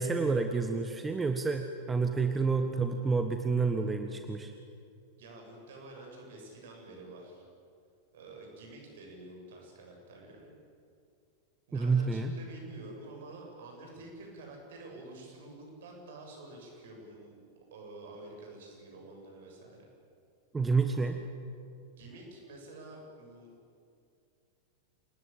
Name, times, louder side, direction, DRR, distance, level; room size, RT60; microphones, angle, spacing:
voice 1, 0.0-4.5 11.7-12.3 20.5-21.2, right 4 dB, 15° right, 6 dB, 1.5 m, -29 dB
voice 2, 5.2-7.4 8.1-10.5 11.7-17.4 17.7-19.9 21.9-23.5, right 2 dB, 60° right, 1 dB, 7.8 m, -49 dB
27.5 x 20.0 x 8.9 m, 2.4 s
figure-of-eight pair, 90°, 0 cm